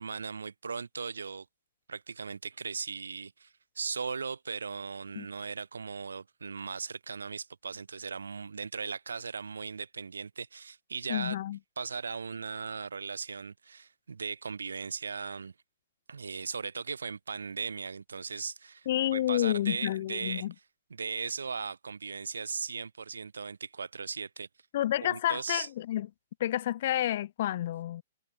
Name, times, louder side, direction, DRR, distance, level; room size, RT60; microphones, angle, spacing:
voice 1, 0.0-1.5 1.9-11.4 11.8-15.5 16.1-20.5 20.9-24.5 25.0-25.7, right 5 dB, 90° right, 3.0 m, -38 dB
voice 2, 11.1-11.6 18.9-20.5 24.7-26.1 26.4-28.0, left 13 dB, 55° left, 3.1 m, -29 dB
hypercardioid pair, 130°, 0 cm